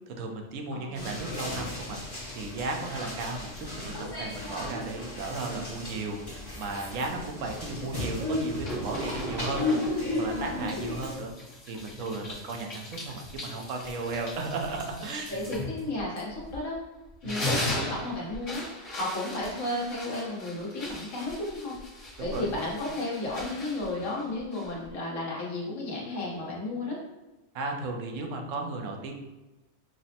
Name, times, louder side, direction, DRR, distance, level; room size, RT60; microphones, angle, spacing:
voice 1, 0.1-11.3 11.7-15.6 17.2-17.4 22.2-22.5 27.5-29.1, right 3 dB, 80° right, 2 dB, 1.0 m, -35 dB
voice 2, 0.7-1.1 10.3-10.8 15.3-16.8 17.2-27.0, left 2 dB, 80° left, -4 dB, 1.5 m, -33 dB
sound 1, 0.9-11.1, left 2 dB, 20° left, 0.8 m, -34 dB
sound 2, 8.6-10.2 10.7-16.7 17.1-24.9, left 1 dB, 55° left, 1.5 m, -38 dB
6.0 x 2.0 x 2.8 m, 1.1 s
omnidirectional pair, 1.3 m